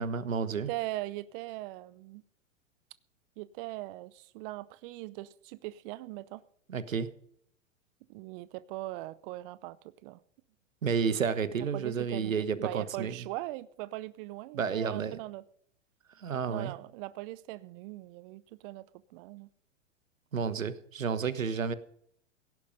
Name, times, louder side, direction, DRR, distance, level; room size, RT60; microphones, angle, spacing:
voice 1, 0.0-0.7 6.7-7.1 10.8-13.2 14.5-15.2 16.2-16.7 20.3-21.7, right 6 dB, 85° right, 1.3 m, -31 dB
voice 2, 0.7-2.2 3.4-6.4 8.1-9.8 10.0-10.2 11.7-15.4 16.5-19.5, right 18 dB, 45° right, 0.7 m, -40 dB
17.0 x 11.0 x 5.3 m
hypercardioid pair, 105°, 39 cm